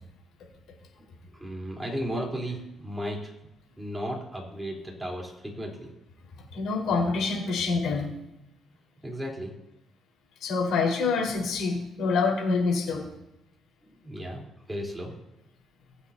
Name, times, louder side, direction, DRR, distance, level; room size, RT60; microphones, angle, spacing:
voice 1, 1.4-3.3 3.8-5.9 9.0-9.5 14.0-14.4 14.7-15.1, equal, 10° right, -2 dB, 4.0 m, -34 dB
voice 2, 6.5-8.1 10.4-13.1, left 4 dB, 80° left, -2 dB, 4.6 m, -26 dB
21.5 x 8.2 x 2.9 m, 0.91 s
cardioid pair, 90°, 0 cm